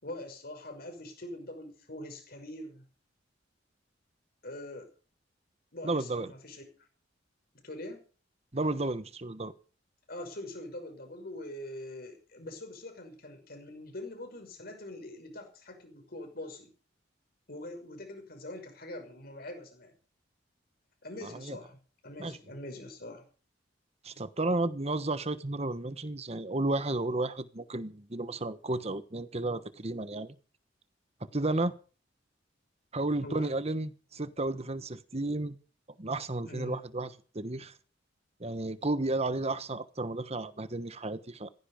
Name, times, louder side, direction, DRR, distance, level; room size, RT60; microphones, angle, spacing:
voice 1, 0.0-2.8 4.4-4.9 5.7-6.6 7.6-8.0 10.1-16.7 17.5-19.9 21.0-21.8 22.0-23.2 33.2-33.5 36.4-36.8, left 1 dB, 55° left, 5.9 m, -43 dB
voice 2, 5.8-6.3 8.5-9.5 21.2-21.6 22.2-22.4 24.0-30.4 31.3-31.7 32.9-35.5 36.0-37.1 37.3-37.7 38.4-41.5, right 2 dB, 35° right, 1.2 m, -32 dB
16.0 x 15.0 x 5.1 m
head